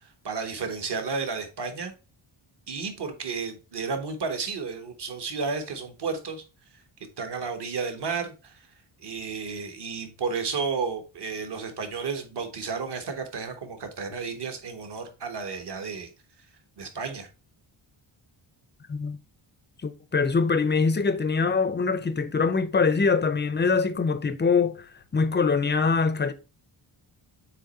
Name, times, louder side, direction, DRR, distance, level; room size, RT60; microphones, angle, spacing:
voice 1, 0.0-1.9 2.7-6.4 6.7-6.8 7.2-8.7 9.0-16.1 16.8-17.3, right 5 dB, 55° right, 1.3 m, -32 dB
voice 2, 19.8-26.3, left 4 dB, 20° left, 0.5 m, -24 dB
7.4 x 3.1 x 4.1 m
wide cardioid pair, 145°, 49 cm